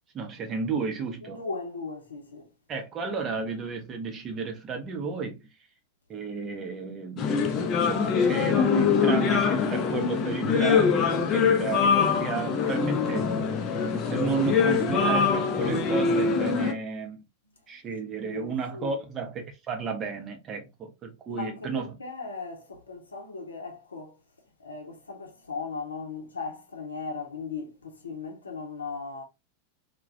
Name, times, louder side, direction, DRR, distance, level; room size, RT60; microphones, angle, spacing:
voice 1, 0.1-1.4 2.7-5.4 6.1-7.4 7.8-13.3 14.1-17.2 17.7-22.0, right 5 dB, 30° right, 0.6 m, -32 dB
voice 2, 1.2-2.5 18.2-19.0 21.3-24.2 24.6-29.2, left 4 dB, 75° left, 0.6 m, -37 dB
sound 1, 7.2-16.7, left 5 dB, 30° left, 0.4 m, -24 dB
2.3 x 2.1 x 2.5 m
figure-of-eight pair, 90°, 0 cm